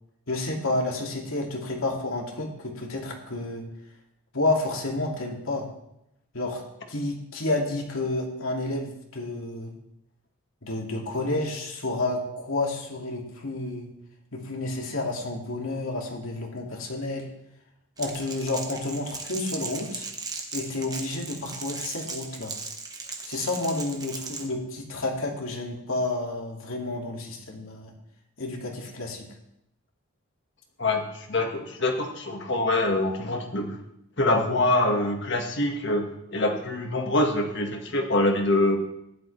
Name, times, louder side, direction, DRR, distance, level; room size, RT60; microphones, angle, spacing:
voice 1, 0.3-3.6 4.3-5.7 6.3-6.6 6.9-9.7 10.6-13.9 14.3-17.3 18.0-20.1 20.5-22.5 23.2-27.9 28.4-29.3, left 2 dB, 75° left, 0 dB, 2.4 m, -30 dB
Crackle, 18.0-24.5, right 4 dB, 15° right, 1.1 m, -37 dB
voice 2, 30.8-33.7 34.2-36.1 36.3-38.8, left 2 dB, 55° left, 3 dB, 1.7 m, -24 dB
15.0 x 11.5 x 3.3 m, 0.81 s
head